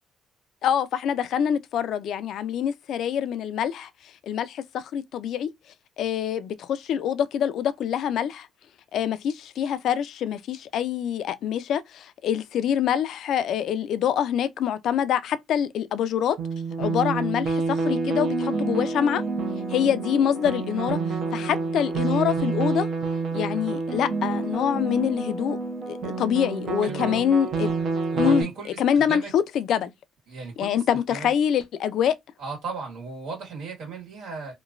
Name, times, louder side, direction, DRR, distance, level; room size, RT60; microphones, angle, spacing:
voice 1, 0.6-3.9 4.2-5.5 6.0-8.5 8.9-16.4 16.8-19.2 19.7-22.9 23.3-25.6 25.9-27.7 28.2-28.5 28.8-29.9 30.6-32.2, left 9 dB, 70° left, 0.4 m, -25 dB
sound 1, 16.4-28.4, right 4 dB, 60° right, 0.7 m, -28 dB
voice 2, 26.8-27.2 28.1-29.3 30.3-30.8 31.1-31.3 32.4-34.5, right 4 dB, 85° right, 1.7 m, -36 dB
2.9 x 2.2 x 2.5 m
cardioid pair, 90°, 0 cm